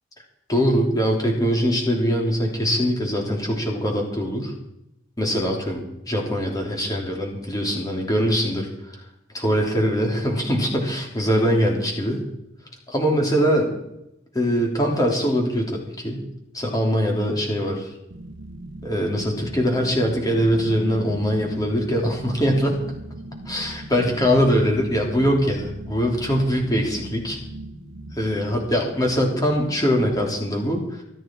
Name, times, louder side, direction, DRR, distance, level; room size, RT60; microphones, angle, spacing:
voice 1, 0.5-4.5 5.2-9.0 9.3-12.2 12.9-13.7 14.3-16.2 16.5-17.9 18.8-22.9 23.5-27.4 28.1-31.0, equal, 20° left, 0 dB, 3.2 m, -22 dB
number two (loop), 18.1-30.3, right 1 dB, 85° right, 1.2 m, -38 dB
26.0 x 9.2 x 4.6 m, 0.85 s
head